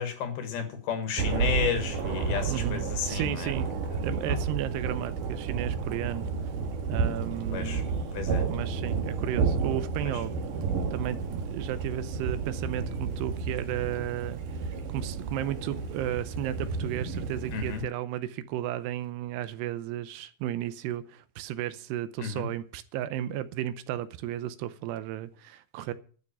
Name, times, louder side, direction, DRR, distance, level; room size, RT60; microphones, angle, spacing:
voice 1, 0.0-3.5 4.3-4.4 7.5-7.8 8.1-8.4 10.1-10.2 17.5-17.9 22.2-22.5, left 7 dB, 70° left, 3.4 m, -32 dB
Thunder, 1.2-17.8, right 5 dB, 60° right, 2.6 m, -31 dB
voice 2, 2.5-3.7 4.0-6.3 6.9-8.0 8.5-10.3 10.9-14.4 14.7-25.9, right 12 dB, 80° right, 2.8 m, -34 dB
12.0 x 6.5 x 8.9 m
omnidirectional pair, 4.9 m